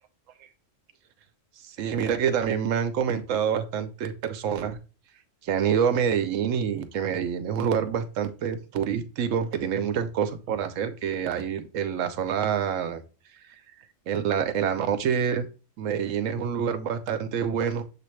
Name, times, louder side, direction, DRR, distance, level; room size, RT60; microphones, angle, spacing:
voice 1, 1.8-4.8 5.4-13.0 14.1-15.4 15.8-17.8, right 7 dB, 80° right, 10 dB, 1.0 m, -27 dB
6.8 x 2.5 x 3.1 m, 0.34 s
omnidirectional pair, 1.4 m